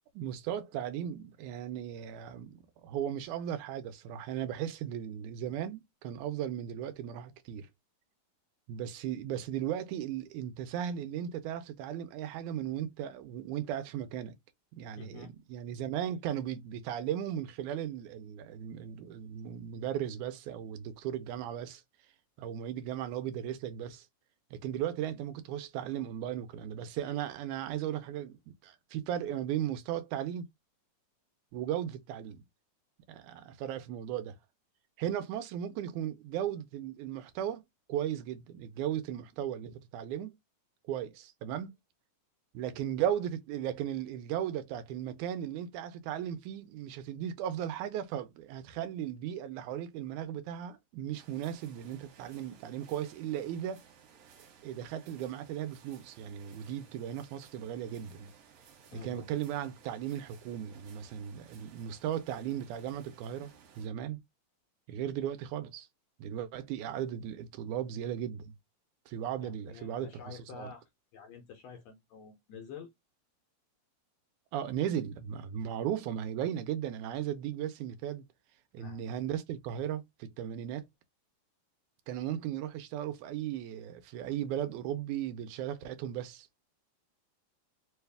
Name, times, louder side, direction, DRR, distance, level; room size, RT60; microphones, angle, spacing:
voice 1, 0.1-7.7 8.7-14.3 14.7-21.8 22.4-24.1 24.5-28.4 28.6-30.5 31.5-32.4 33.1-34.4 35.0-37.6 37.9-40.3 40.9-41.7 42.5-53.8 54.6-58.3 59.0-64.2 64.9-65.9 66.2-68.5 69.1-70.7 74.5-78.3 78.7-80.8 82.1-86.5, right 10 dB, 80° right, 2.1 m, -36 dB
voice 2, 15.0-15.3 58.9-59.3 69.4-70.8 71.1-72.9 78.8-79.0, left 6 dB, 75° left, 1.6 m, -48 dB
sound 1, 51.1-63.9, right 7 dB, 65° right, 2.3 m, -59 dB
4.8 x 2.3 x 3.3 m
omnidirectional pair, 3.6 m